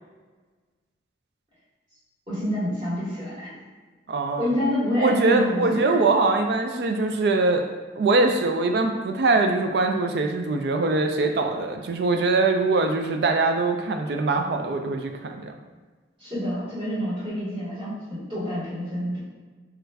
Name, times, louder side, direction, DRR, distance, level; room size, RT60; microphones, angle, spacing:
voice 1, 2.3-3.5 4.4-5.9 16.2-19.2, equal, 30° right, -11 dB, 1.2 m, -27 dB
voice 2, 4.1-4.5 5.0-7.7 8.0-15.5, right 3 dB, 60° right, 5 dB, 0.3 m, -22 dB
3.1 x 2.4 x 3.4 m, 1.4 s
head